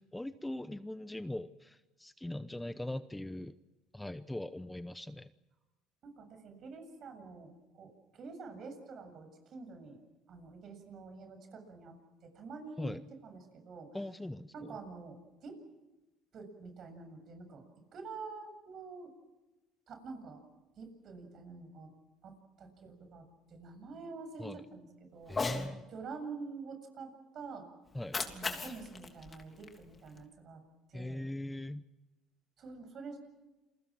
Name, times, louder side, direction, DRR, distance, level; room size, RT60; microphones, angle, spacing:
voice 1, 0.0-3.5 3.9-5.3 12.8-13.0 13.9-14.7 24.4-24.6 25.3-25.8 27.9-28.2 30.9-31.8, left 1 dB, 5° left, 13 dB, 0.8 m, -40 dB
voice 2, 6.0-10.0 10.3-12.0 12.2-14.0 14.5-15.6 16.3-19.1 19.9-20.4 20.8-21.9 22.2-27.7 28.3-30.6 30.9-31.3 32.6-33.2, right 4 dB, 50° right, 6 dB, 7.6 m, -47 dB
Cat, 25.2-25.7 27.9-30.2, left 4 dB, 25° left, 3.2 m, -38 dB
28.5 x 23.0 x 6.2 m, 1.1 s
supercardioid pair, 95°, 0 cm